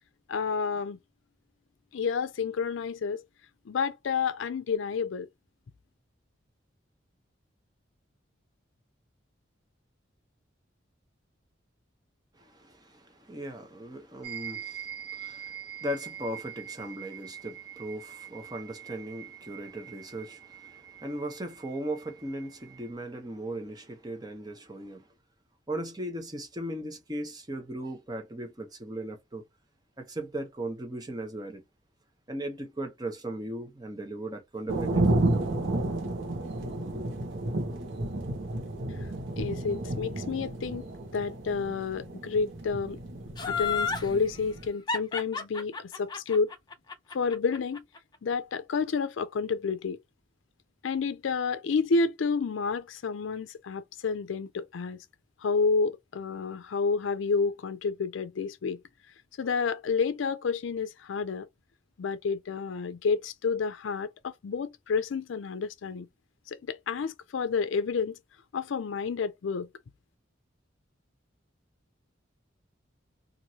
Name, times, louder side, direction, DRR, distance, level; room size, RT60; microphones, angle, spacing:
voice 1, 0.3-1.0 1.9-3.2 3.7-5.3 39.4-43.0 43.5-46.5 47.1-47.8 48.2-50.0 50.8-55.0 55.4-58.8 59.4-61.5 62.0-66.1 66.5-68.2 68.5-69.7, left 5 dB, 80° left, 0.4 m, -30 dB
voice 2, 12.3-25.1 25.7-29.4 30.0-31.6 32.3-35.5 36.9-37.1, right 1 dB, 20° right, 0.8 m, -38 dB
sound 1, 14.2-22.9, right 9 dB, 55° right, 1.5 m, -44 dB
sound 2, 34.7-44.7, right 1 dB, 80° right, 0.9 m, -31 dB
Laughter, 43.4-44.1 44.9-48.0 48.3-48.4, left 5 dB, 20° left, 0.6 m, -31 dB
3.0 x 2.6 x 2.7 m
head